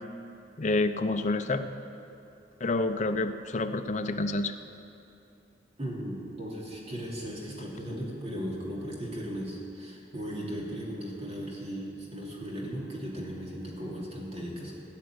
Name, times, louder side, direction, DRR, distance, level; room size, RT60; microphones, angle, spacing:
voice 1, 0.6-1.7 2.6-4.5, left 2 dB, 40° left, 7 dB, 0.7 m, -28 dB
voice 2, 5.8-14.7, equal, 35° right, -3 dB, 2.9 m, -37 dB
17.0 x 6.4 x 9.6 m, 2.8 s
head